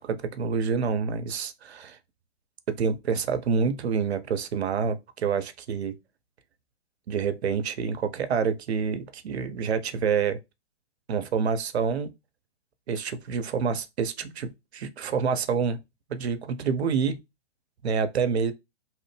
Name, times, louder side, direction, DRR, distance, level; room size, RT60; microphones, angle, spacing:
voice 1, 0.0-2.0 2.8-5.9 7.1-10.4 11.1-12.1 12.9-15.8 16.1-17.2 17.8-18.5, right 6 dB, 75° right, 0.6 m, -27 dB
2.9 x 2.0 x 3.1 m
hypercardioid pair, 130°, 33 cm